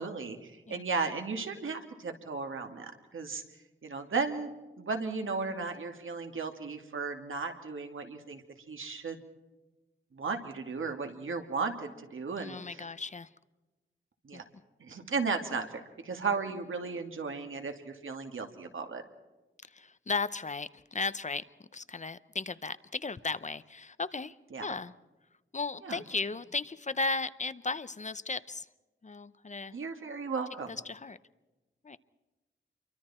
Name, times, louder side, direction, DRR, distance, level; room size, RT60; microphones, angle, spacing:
voice 1, 0.0-3.4 3.8-4.5 4.8-9.2 10.1-12.9 14.2-14.4 14.8-19.0 24.5-24.6 25.8-26.0 29.7-30.7, right 4 dB, 80° right, 5 dB, 2.6 m, -35 dB
voice 2, 12.4-13.3 14.3-14.4 19.6-24.4 24.6-24.9 25.5-28.7 29.0-29.8 30.7-31.2 31.8-32.0, left 4 dB, 35° left, 15 dB, 0.7 m, -35 dB
29.0 x 24.0 x 4.4 m, 1.1 s
wide cardioid pair, 115°, 21 cm